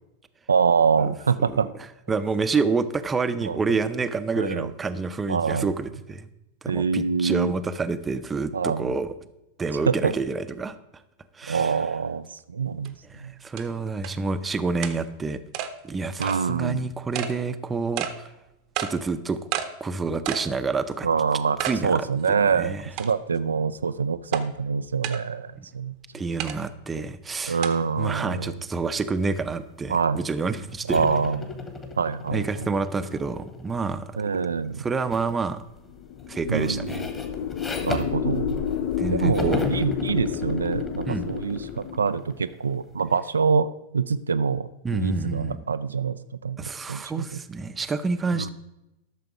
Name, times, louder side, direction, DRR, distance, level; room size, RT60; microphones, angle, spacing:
voice 1, 0.5-1.7 3.4-3.8 4.4-4.7 5.3-5.7 6.7-7.5 8.5-8.9 9.9-10.1 11.5-13.3 16.2-16.9 21.0-21.6 21.8-25.9 27.5-28.6 29.9-30.2 30.9-31.4 32.0-32.7 34.2-34.9 36.5-37.1 37.8-38.5 39.1-47.4 48.3-48.5, right 5 dB, 70° right, 12 dB, 0.3 m, -25 dB
voice 2, 2.1-6.3 6.6-9.1 9.6-10.7 11.3-11.7 13.1-15.4 15.8-18.3 18.8-19.4 19.8-21.1 21.6-22.0 22.3-22.9 25.6-25.7 26.1-27.6 28.0-31.1 32.3-34.1 34.8-35.6 36.3-37.0 38.6-38.7 39.0-39.7 41.1-41.3 44.8-45.6 46.6-48.5, right 4 dB, 15° right, 11 dB, 0.7 m, -28 dB
sound 1, 12.9-13.0 13.6-13.7 14.0-14.1 14.8-15.0 15.5-15.7 16.2-16.4 17.1-17.3 18.0-18.1 18.8-18.9 19.5-19.7 20.3-20.5 20.9-21.0 21.6-21.8 22.2-22.3 23.0-23.4 24.3-24.4 25.0-25.2 26.4-26.6 27.6-27.7, right 11 dB, 45° right, 0.8 m, -30 dB
sound 2, 30.9-34.2 35.1-35.4 35.8-39.0 39.3-42.9, left 4 dB, 15° left, 1.5 m, -36 dB
sound 3, 36.0-42.1, left 9 dB, 45° left, 0.6 m, -30 dB
12.5 x 6.7 x 4.8 m, 0.92 s
figure-of-eight pair, 90°, 0 cm